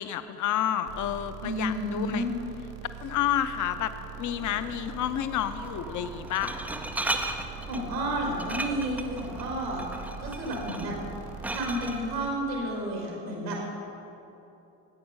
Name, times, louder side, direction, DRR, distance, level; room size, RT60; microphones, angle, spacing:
voice 1, 0.0-2.2 3.0-6.6, left 10 dB, 40° left, 12 dB, 0.6 m, -30 dB
sound 1, 0.9-12.3, right 8 dB, 55° right, 1.2 m, -43 dB
voice 2, 1.4-2.3 7.7-9.8 10.2-10.9 11.5-13.6, right 1 dB, 80° right, -1 dB, 1.9 m, -31 dB
Glass, 4.2-12.0, right 2 dB, 5° right, 0.3 m, -37 dB
9.7 x 8.6 x 5.4 m, 2.9 s
figure-of-eight pair, 55°, 49 cm